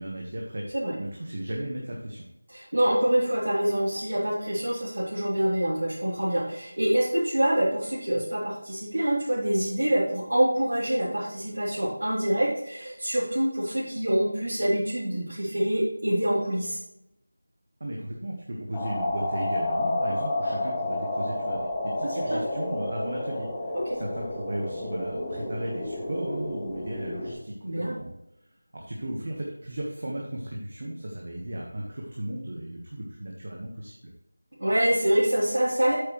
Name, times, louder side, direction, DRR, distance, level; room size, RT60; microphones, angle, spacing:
voice 1, 0.0-2.2 17.8-28.1 28.7-34.0, right 1 dB, 40° right, -2 dB, 1.4 m, -35 dB
voice 2, 2.5-16.8 22.0-22.4 23.7-24.0 27.6-28.0 34.6-35.9, right 1 dB, 80° right, -9 dB, 3.3 m, -26 dB
sound 1, 18.7-27.3, left 2 dB, 5° left, 1.0 m, -31 dB
8.4 x 8.1 x 3.2 m, 0.85 s
figure-of-eight pair, 175°, 0 cm